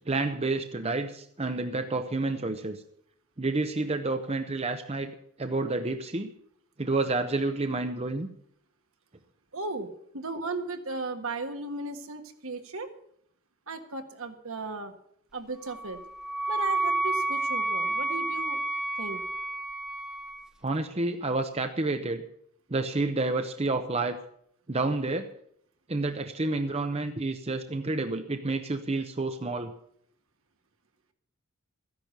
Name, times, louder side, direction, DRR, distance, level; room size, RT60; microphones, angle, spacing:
voice 1, 0.1-2.8 3.4-6.3 6.8-8.3 20.6-22.2 22.7-24.2 24.7-25.3 25.9-29.7, right 2 dB, 30° right, 7 dB, 0.8 m, -29 dB
voice 2, 9.5-9.9 10.1-12.9 13.7-14.9 15.3-16.0 16.5-18.6 19.0-19.2, right 3 dB, 65° right, 7 dB, 1.6 m, -36 dB
Wind instrument woodwind instrument, 15.7-20.5, right 2 dB, 5° right, 0.9 m, -30 dB
14.0 x 10.5 x 6.7 m, 0.68 s
head